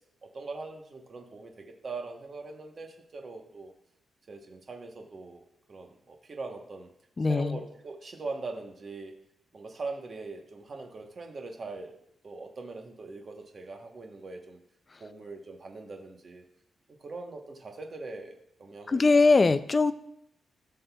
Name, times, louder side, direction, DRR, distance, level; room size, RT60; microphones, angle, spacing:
voice 1, 0.3-3.7 4.3-6.9 7.2-9.2 9.5-12.0 12.2-14.6 15.0-16.4 16.9-19.2, right 3 dB, 35° right, 3 dB, 1.0 m, -41 dB
voice 2, 7.2-7.6 18.9-19.9, left 3 dB, 25° left, 12 dB, 0.3 m, -21 dB
15.0 x 6.4 x 2.3 m, 0.76 s
wide cardioid pair, 175°, 0 cm